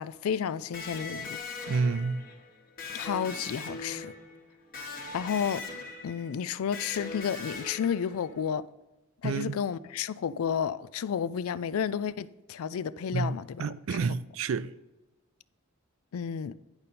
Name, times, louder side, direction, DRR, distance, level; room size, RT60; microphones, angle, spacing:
voice 1, 0.0-1.4 2.9-4.1 5.1-5.6 6.0-8.6 9.2-13.7 16.1-16.5, left 7 dB, 80° left, 0.4 m, -31 dB
Electric guitar, 0.7-8.4, left 3 dB, 40° left, 1.3 m, -41 dB
voice 2, 1.7-2.3 9.2-9.6 13.1-14.7, right 4 dB, 65° right, 0.4 m, -29 dB
10.5 x 5.3 x 4.2 m
head